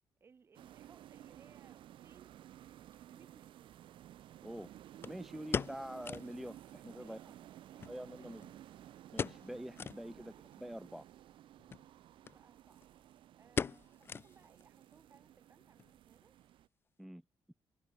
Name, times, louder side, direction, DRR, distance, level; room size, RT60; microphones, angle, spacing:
voice 1, 0.2-2.4 3.1-3.8 7.0-8.8 10.1-10.4 12.2-12.8 13.3-16.4, right 5 dB, 30° right, 7.9 m, -65 dB
sound 1, 0.5-16.7, right 12 dB, 75° right, 3.1 m, -55 dB
sound 2, 2.9-3.0 5.0-6.4 6.7-6.8 7.1-7.2 7.8-8.7 9.1-9.5 9.8-10.0 10.5-10.6 11.6-11.9 12.2-12.4 12.7-13.0 13.6-14.6 14.9-15.0 15.6-15.9 16.2-16.3, left 6 dB, 25° left, 0.4 m, -39 dB
voice 2, 5.1-7.2 7.8-8.5 9.1-11.1 17.0-17.2, equal, ahead, 1.6 m, -46 dB
cardioid pair, 180°, 9 cm